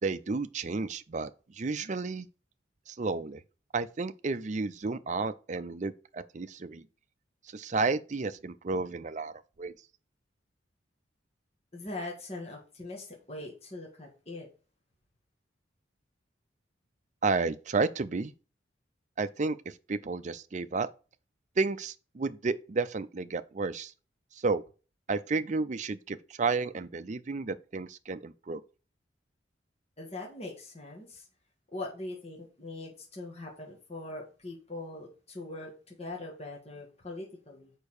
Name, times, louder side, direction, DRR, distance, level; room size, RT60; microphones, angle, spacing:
voice 1, 0.0-1.3 1.6-2.3 2.9-3.4 3.7-6.8 7.5-9.3 9.6-9.7 17.2-18.3 19.2-20.9 21.6-23.9 24.4-24.6 25.1-28.6, right 4 dB, 40° right, 0.5 m, -31 dB
voice 2, 11.7-14.5 30.0-31.3 31.7-37.7, left 2 dB, 35° left, 1.8 m, -41 dB
6.7 x 5.4 x 4.8 m
head